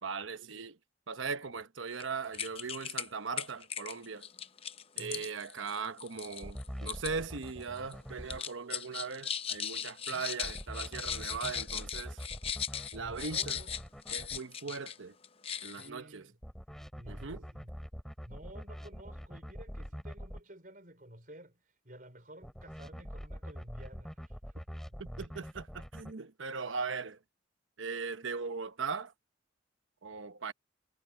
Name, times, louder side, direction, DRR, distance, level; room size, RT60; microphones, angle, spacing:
voice 1, 0.0-0.8 1.1-4.3 5.0-12.2 12.9-13.6 14.1-15.1 15.6-16.2 17.1-17.4 25.0-27.2 27.8-29.1 30.0-30.5, right 5 dB, 85° right, 1.0 m, -39 dB
sound 1, 1.9-2.0 2.3-3.1 3.4-7.1 7.4-7.9 8.3-15.0 15.2-15.9, left 8 dB, 30° left, 0.7 m, -38 dB
voice 2, 4.9-5.3 10.1-10.3 12.9-13.7 14.6-14.7 15.7-16.4 16.9-17.7 18.2-25.0, right 1 dB, 45° right, 4.8 m, -53 dB
sound 2, 6.4-8.4 10.4-14.4 16.4-20.4 22.4-26.1, equal, ahead, 3.3 m, -44 dB
head